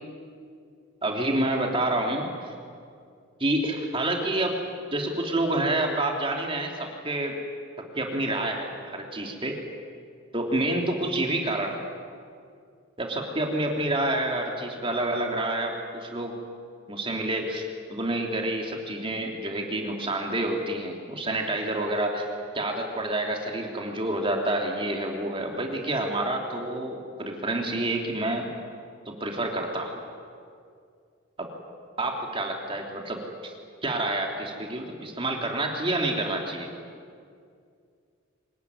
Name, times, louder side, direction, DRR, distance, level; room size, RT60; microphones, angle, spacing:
voice 1, 1.0-2.5 3.4-4.6 4.9-7.4 7.9-9.6 10.3-11.8 13.0-16.4 16.9-22.3 22.5-28.5 29.1-29.9 31.4-31.5 32.0-33.5 33.8-36.7, right 1 dB, 25° right, 1 dB, 3.3 m, -28 dB
24.5 x 20.5 x 9.8 m, 2.3 s
head